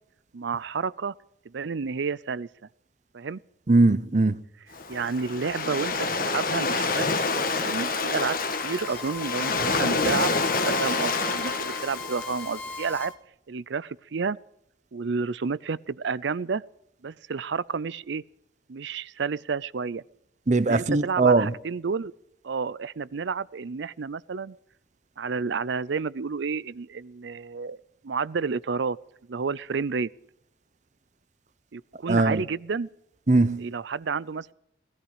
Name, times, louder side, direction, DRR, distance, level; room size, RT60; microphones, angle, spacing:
voice 1, 0.3-1.1 1.5-2.5 3.1-3.4 4.9-5.9 6.2-7.1 7.6-8.4 8.6-10.3 10.6-13.1 13.5-14.4 14.9-16.6 17.0-18.2 18.7-20.0 20.6-22.1 22.4-24.6 25.2-27.8 28.0-29.0 29.3-30.1 31.7-32.9 33.6-34.5, right 5 dB, 70° right, 0.5 m, -30 dB
voice 2, 3.7-4.4 20.5-21.5 32.1-32.4 33.3-33.7, right 3 dB, 40° right, 0.7 m, -20 dB
Waves surf, 4.7-13.0, left 3 dB, 50° left, 1.4 m, -27 dB
Bowed string instrument, 8.2-13.2, left 3 dB, 10° left, 2.5 m, -40 dB
19.0 x 14.0 x 4.9 m
head